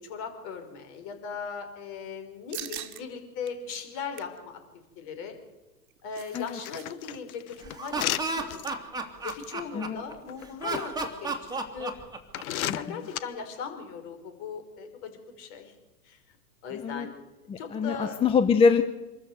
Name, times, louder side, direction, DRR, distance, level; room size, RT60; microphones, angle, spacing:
voice 1, 0.0-5.3 6.0-8.9 9.2-10.9 11.2-11.9 12.6-15.7 16.0-16.4 16.6-17.2 17.6-18.2, left 6 dB, 45° left, 6 dB, 5.4 m, -39 dB
sound 1, 2.5-3.0 3.5-3.6 3.9-4.4 5.7-6.9 7.1-7.2 7.6-7.8, right 12 dB, 65° right, 1.9 m, -42 dB
sound 2, 6.3-8.7 9.3-9.4 10.3-10.8 11.5-11.6 12.3-13.2, left 13 dB, 60° left, 1.1 m, -33 dB
Laughter, 7.6-10.1 10.6-12.6, right 3 dB, 10° right, 2.5 m, -33 dB
voice 2, 17.5-18.8, left 5 dB, 10° left, 10 dB, 0.7 m, -24 dB
25.5 x 13.5 x 8.1 m, 1.1 s
hypercardioid pair, 120°, 47 cm